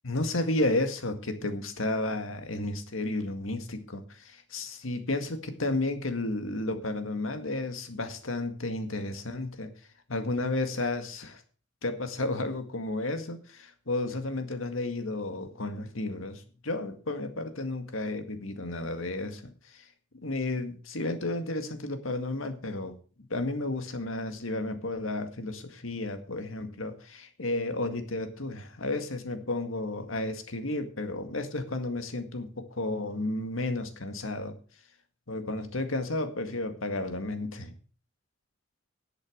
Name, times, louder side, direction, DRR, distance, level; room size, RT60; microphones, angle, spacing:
voice 1, 0.0-9.7 10.1-11.4 11.8-19.9 20.2-22.9 23.3-34.6 35.3-37.7, left 2 dB, 90° left, 8 dB, 1.9 m, -32 dB
11.0 x 8.0 x 6.5 m, 0.40 s
head